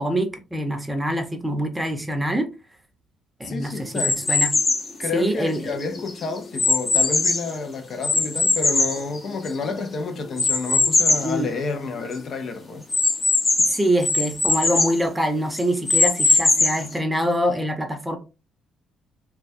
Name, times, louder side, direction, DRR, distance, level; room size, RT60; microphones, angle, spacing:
voice 1, 0.0-2.5 3.4-4.5 5.1-5.6 11.2-11.5 13.7-18.2, equal, 10° right, 0.7 m, -25 dB
voice 2, 3.4-4.2 5.0-12.8, left 4 dB, 55° left, 0.5 m, -30 dB
sound 1, 3.9-4.9 5.5-7.5 8.0-9.7 10.4-11.3 11.8-11.9 12.1-12.2 12.9-15.0 15.6-16.9, left 3 dB, 35° left, 0.8 m, -21 dB
2.3 x 2.1 x 2.5 m
supercardioid pair, 70°, 0 cm